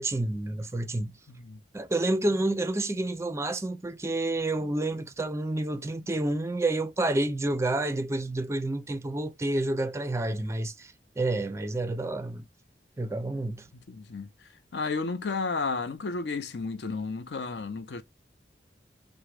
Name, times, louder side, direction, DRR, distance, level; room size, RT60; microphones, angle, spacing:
voice 1, 0.0-1.2 1.7-12.5 13.0-13.7, right 2 dB, 15° right, 0.4 m, -29 dB
voice 2, 1.3-1.6 13.7-18.0, left 4 dB, 65° left, 0.6 m, -33 dB
3.4 x 2.1 x 3.2 m
head